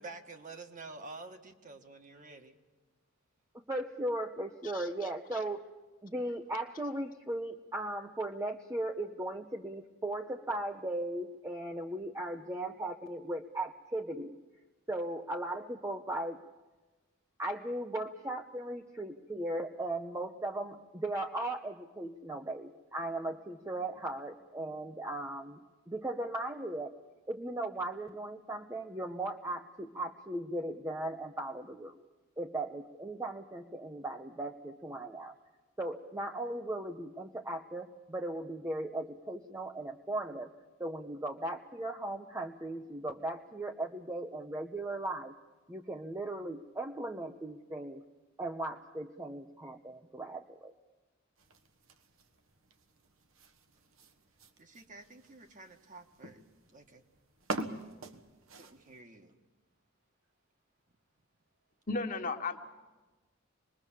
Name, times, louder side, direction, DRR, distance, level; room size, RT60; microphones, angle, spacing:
voice 1, 0.0-2.6 54.6-56.4 56.7-57.0 58.6-59.3, right 3 dB, 40° right, 5 dB, 1.6 m, -49 dB
voice 2, 3.7-5.6 6.0-14.4 14.9-16.4 17.4-25.6 25.9-26.9 27.3-32.0 32.4-35.3 35.8-40.5 40.8-45.3 45.7-48.0 48.4-50.7, right 1 dB, 15° right, 3 dB, 0.7 m, -37 dB
sound 1, 51.4-59.0, right 2 dB, 75° right, 1.5 m, -45 dB
voice 3, 61.9-62.7, left 3 dB, 40° left, 4 dB, 1.6 m, -35 dB
26.0 x 21.0 x 7.4 m, 1.2 s
head